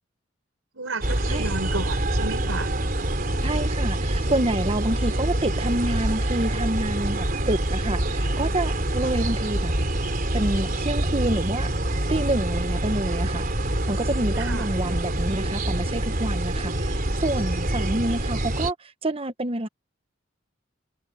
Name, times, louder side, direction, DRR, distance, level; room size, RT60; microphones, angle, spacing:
voice 1, 0.7-2.7 14.4-14.7, right 3 dB, 85° right, 4.5 m, -32 dB
sound 1, 1.0-18.7, right 1 dB, 45° right, 3.8 m, -26 dB
voice 2, 3.4-9.7 10.3-11.7 12.1-19.7, right 1 dB, 30° right, 1.1 m, -28 dB
head